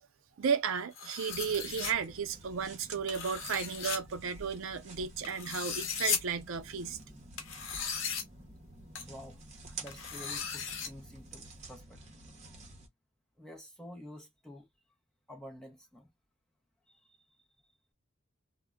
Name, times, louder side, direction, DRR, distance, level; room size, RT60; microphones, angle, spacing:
voice 1, 0.4-7.0, right 6 dB, 80° right, 0.5 m, -34 dB
sound 1, 1.0-1.9 3.1-4.0 5.2-6.2 7.4-8.2 9.0-9.1 9.9-10.9, left 6 dB, 70° left, 0.7 m, -36 dB
sound 2, 1.3-12.9, right 2 dB, 35° right, 0.7 m, -50 dB
voice 2, 9.1-9.4 9.7-12.2 13.4-14.7 15.3-16.1 16.9-17.2, left 1 dB, 5° left, 0.6 m, -50 dB
2.1 x 2.0 x 3.5 m
head